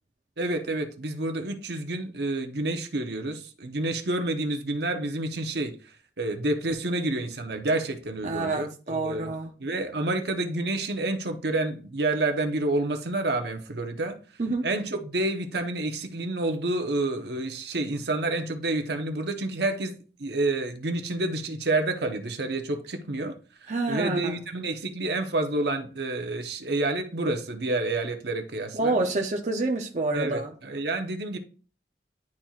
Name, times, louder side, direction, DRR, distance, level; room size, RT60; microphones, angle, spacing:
voice 1, 0.4-5.7 6.2-9.3 9.6-14.2 14.6-23.3 23.9-29.0 30.1-31.4, right 2 dB, 65° right, 1.0 m, -29 dB
voice 2, 8.2-9.5 14.4-14.7 23.7-24.4 28.7-30.5, right 2 dB, 40° right, 0.6 m, -28 dB
11.0 x 4.3 x 2.4 m
head